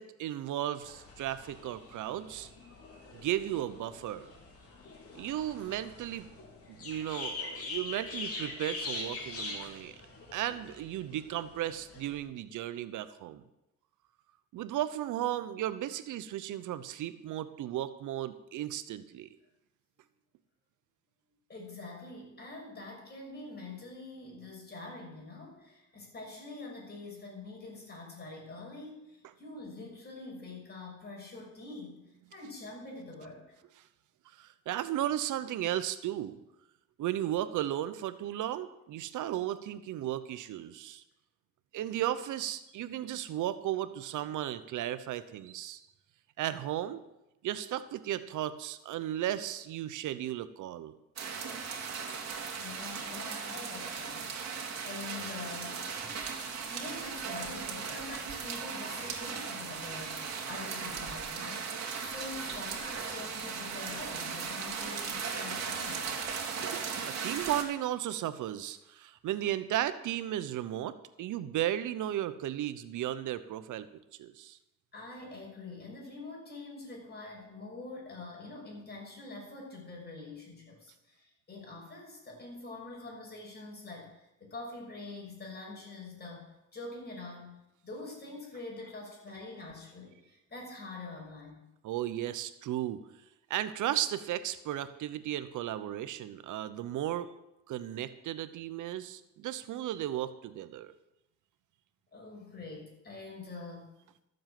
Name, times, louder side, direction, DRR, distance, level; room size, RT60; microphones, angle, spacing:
voice 1, 0.0-2.5 3.1-4.3 5.1-6.3 6.7-9.9 10.3-13.4 14.5-19.3 34.4-36.4 37.0-41.0 41.7-45.8 46.4-47.0 47.4-50.9 66.6-73.9 74.2-74.6 91.8-93.0 93.5-97.3 97.7-100.9, right 12 dB, 80° right, 13 dB, 0.9 m, -35 dB
sound 1, 0.8-12.2, left 3 dB, 50° left, 3.6 m, -43 dB
voice 2, 21.5-32.0 32.3-33.5 52.6-56.2 56.6-66.1 74.9-86.4 86.7-91.6 102.1-103.9, left 3 dB, 35° left, -1 dB, 6.4 m, -45 dB
sound 2, 51.2-67.6, right 5 dB, 60° right, 2.7 m, -37 dB
13.5 x 7.8 x 7.6 m, 0.90 s
cardioid pair, 90°, 30 cm